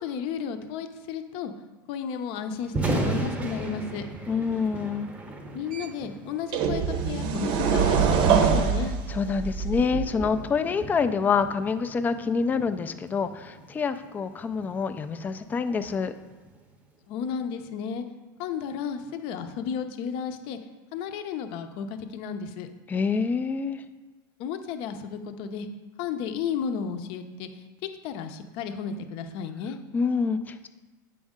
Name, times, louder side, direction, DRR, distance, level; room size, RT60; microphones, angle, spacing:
voice 1, 0.0-1.5 1.9-4.0 5.5-8.9 17.1-18.0 18.4-20.6 20.9-22.7 24.4-25.7 26.0-27.5 28.0-29.8, left 7 dB, 50° left, 8 dB, 0.7 m, -33 dB
Thunder, 2.6-16.8, right 2 dB, 10° right, 0.7 m, -37 dB
voice 2, 4.3-5.1 9.1-16.1 22.9-23.8 29.9-30.7, left 5 dB, 15° left, 9 dB, 0.3 m, -27 dB
sound 1, 5.7-5.8 6.5-10.3, right 6 dB, 45° right, 0.7 m, -24 dB
8.4 x 5.2 x 3.7 m, 1.3 s
supercardioid pair, 130°, 11 cm